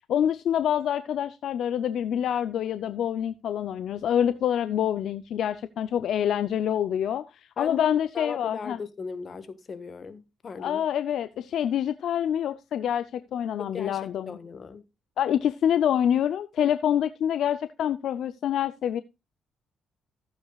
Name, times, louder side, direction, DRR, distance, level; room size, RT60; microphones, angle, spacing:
voice 1, 0.1-7.3 7.6-8.8 10.6-14.3 15.2-19.0, left 9 dB, 70° left, 0.5 m, -26 dB
voice 2, 8.1-10.9 13.6-14.9, left 5 dB, 45° left, 1.5 m, -38 dB
15.0 x 8.7 x 2.4 m
cardioid pair, 90°, 0 cm